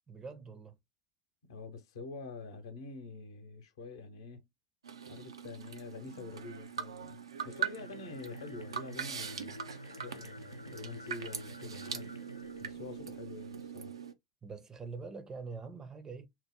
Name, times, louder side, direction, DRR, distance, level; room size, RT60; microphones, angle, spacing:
voice 1, 0.1-0.8 12.7-12.8 14.4-16.3, right 4 dB, 20° right, 0.5 m, -44 dB
voice 2, 1.5-4.5 5.0-9.7 10.0-12.1 12.6-13.9, left 3 dB, 65° left, 0.8 m, -46 dB
sound 1, 4.8-14.1, right 7 dB, 75° right, 0.4 m, -42 dB
sound 2, 7.4-13.7, equal, 90° left, 0.4 m, -49 dB
3.0 x 2.0 x 3.5 m
figure-of-eight pair, 80°, 3 cm